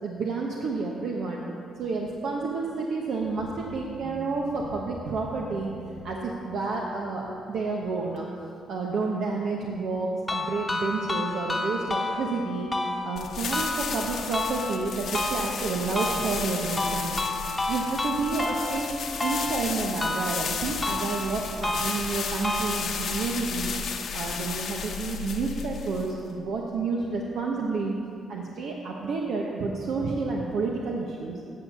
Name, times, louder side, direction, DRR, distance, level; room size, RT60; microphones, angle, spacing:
voice 1, 0.0-1.5 1.8-5.7 6.0-8.2 8.7-12.7 13.0-17.2 17.7-18.9 19.2-23.7 24.1-27.9 28.3-31.4, right 4 dB, 70° right, -1 dB, 1.0 m, -30 dB
sound 1, 3.2-8.2, left 2 dB, 85° left, 1.5 m, -45 dB
sound 2, 10.3-23.2, left 2 dB, 15° left, 1.1 m, -31 dB
sound 3, 13.1-26.3, left 6 dB, 60° left, 1.0 m, -33 dB
9.5 x 6.6 x 7.0 m, 2.5 s
cardioid pair, 90°, 0 cm